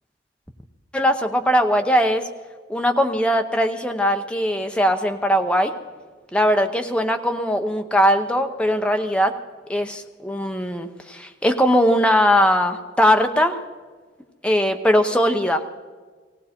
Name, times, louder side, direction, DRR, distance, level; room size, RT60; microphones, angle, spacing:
voice 1, 0.9-2.3 2.7-5.7 6.3-9.3 9.7-13.6 14.4-15.6, equal, 5° left, 5 dB, 0.8 m, -20 dB
18.0 x 17.0 x 4.4 m, 1.5 s
head